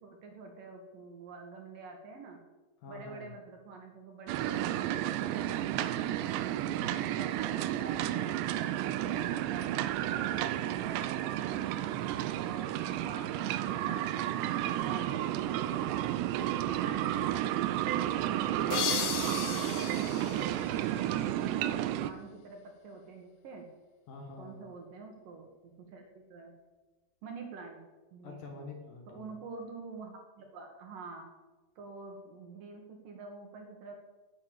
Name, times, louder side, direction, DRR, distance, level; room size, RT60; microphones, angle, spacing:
voice 1, 0.0-2.4 2.9-6.2 6.5-11.6 12.3-14.2 14.6-17.8 19.5-23.7 24.4-26.5 27.2-27.8 28.1-28.4 29.1-31.3 31.8-33.9, right 4 dB, 60° right, 3 dB, 2.7 m, -48 dB
voice 2, 2.8-3.3 6.6-7.2 11.7-12.1 18.2-18.6 24.1-24.7 28.2-29.4, left 3 dB, 60° left, 2 dB, 2.5 m, -48 dB
sound 1, 4.3-22.1, right 12 dB, 80° right, 2.7 m, -32 dB
sound 2, 18.7-21.4, left 9 dB, 80° left, 3.3 m, -36 dB
11.0 x 8.7 x 8.9 m, 1.2 s
omnidirectional pair, 5.3 m